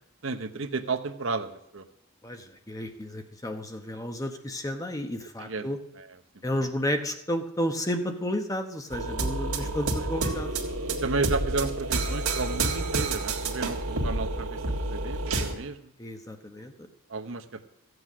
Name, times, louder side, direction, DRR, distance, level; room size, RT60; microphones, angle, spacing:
voice 1, 0.2-1.8 5.4-5.7 5.9-6.1 6.5-6.7 9.6-9.7 11.0-14.6 14.9-15.9 17.1-17.7, right 3 dB, 65° right, 7 dB, 0.9 m, -32 dB
voice 2, 2.2-5.8 6.4-10.5 16.0-16.7, equal, 15° left, 6 dB, 0.9 m, -32 dB
sound 1, 8.9-15.5, right 2 dB, 80° right, 1.8 m, -29 dB
14.5 x 8.0 x 6.1 m, 0.76 s
head